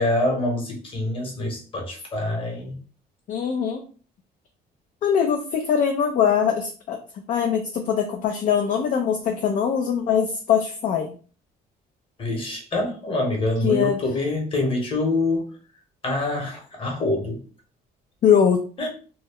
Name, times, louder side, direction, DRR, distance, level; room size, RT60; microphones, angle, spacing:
voice 1, 0.0-2.8 12.2-15.5 16.0-17.4 18.8-18.9, left 2 dB, 30° left, 1 dB, 1.0 m, -25 dB
voice 2, 3.3-3.8 5.0-7.0 7.3-11.2 13.6-14.0 18.2-18.6, left 7 dB, 50° left, 4 dB, 0.4 m, -22 dB
2.2 x 2.0 x 3.4 m, 0.39 s
cardioid pair, 110°, 17 cm